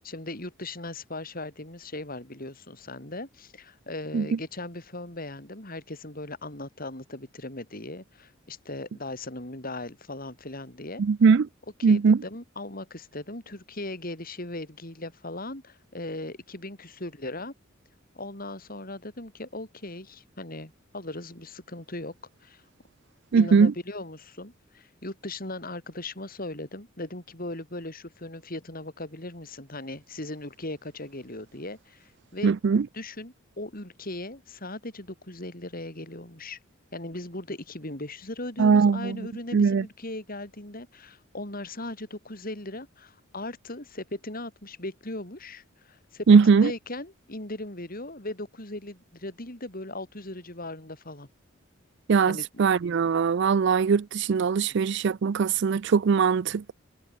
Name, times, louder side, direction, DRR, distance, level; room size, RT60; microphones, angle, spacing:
voice 1, 0.0-11.0 11.8-17.5 18.1-22.1 22.4-22.6 23.3-32.6 32.9-36.6 36.9-51.3 52.3-52.6, left 2 dB, 45° left, 5.2 m, -38 dB
voice 2, 11.0-11.5 11.8-12.2 23.3-23.7 32.4-32.8 38.6-39.2 39.5-39.8 46.3-46.7 52.1-56.7, right 5 dB, 60° right, 0.4 m, -20 dB
head